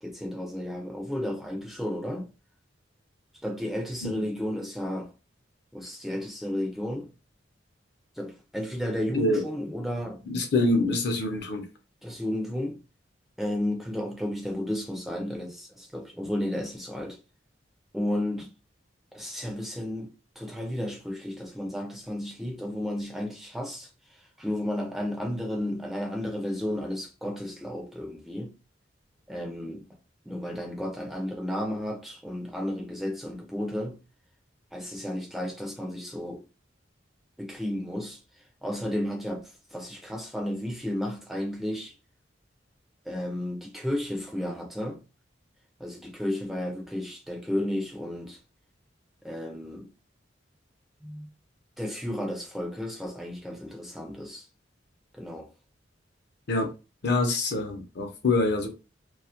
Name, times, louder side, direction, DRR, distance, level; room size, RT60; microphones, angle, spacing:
voice 1, 0.0-2.3 3.4-5.1 5.7-7.1 8.2-10.3 12.0-12.8 13.4-17.2 17.9-18.5 19.1-20.1 20.4-23.9 24.4-28.5 29.3-29.8 30.3-34.0 34.7-36.4 37.4-38.2 38.6-41.9 43.1-45.0 45.8-48.4 49.2-49.9 51.0-51.3 51.8-54.5 55.1-55.5, left 1 dB, ahead, 0.4 m, -33 dB
voice 2, 10.3-11.7 56.5-56.7 57.0-58.7, left 2 dB, 60° left, 0.6 m, -25 dB
2.3 x 2.0 x 2.8 m
head